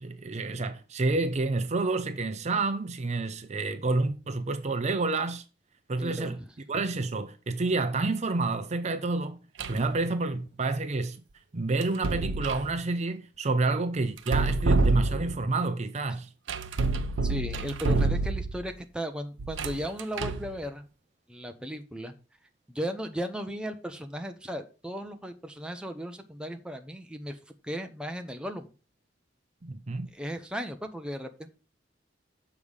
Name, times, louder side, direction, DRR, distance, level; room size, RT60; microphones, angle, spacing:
voice 1, 0.0-5.4 5.9-6.4 6.7-9.4 9.7-11.2 11.5-16.3 29.6-30.1, right 3 dB, 40° right, 0.6 m, -29 dB
voice 2, 6.0-6.5 17.2-20.8 21.3-22.1 22.7-27.4 27.6-28.7 30.1-31.5, equal, 5° right, 0.8 m, -36 dB
sound 1, 9.6-9.9 11.8-12.7 14.2-15.5 16.5-18.7 19.4-20.5, right 3 dB, 90° right, 0.6 m, -27 dB
7.0 x 4.9 x 5.5 m
head